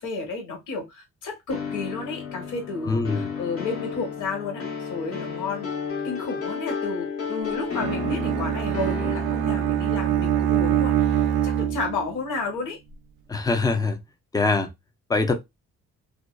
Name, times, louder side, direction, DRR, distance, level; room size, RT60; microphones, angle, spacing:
voice 1, 0.0-5.7 6.0-12.8, left 4 dB, 85° left, 1.3 m, -32 dB
sound 1, 1.5-9.8, left 6 dB, 50° left, 1.0 m, -33 dB
voice 2, 2.8-3.3 13.3-14.0 14.3-14.7 15.1-15.3, left 3 dB, 15° left, 0.5 m, -23 dB
Bowed string instrument, 7.8-12.2, right 10 dB, 80° right, 0.5 m, -24 dB
2.6 x 2.2 x 2.2 m
cardioid pair, 90°, 30 cm